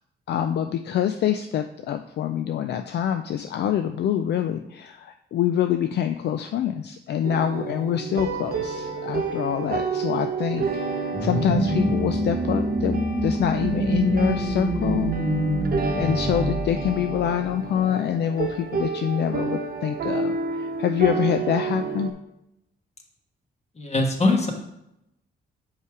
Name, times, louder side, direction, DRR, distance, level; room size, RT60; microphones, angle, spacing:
voice 1, 0.3-15.1 16.0-22.1, left 9 dB, 65° left, 8 dB, 0.4 m, -26 dB
sound 1, 7.2-22.1, right 4 dB, 55° right, 0.9 m, -30 dB
sound 2, 11.1-17.6, right 1 dB, 5° right, 1.4 m, -25 dB
voice 2, 23.8-24.5, left 2 dB, 35° left, 3 dB, 1.4 m, -21 dB
5.5 x 4.9 x 4.7 m, 0.84 s
cardioid pair, 80°, 19 cm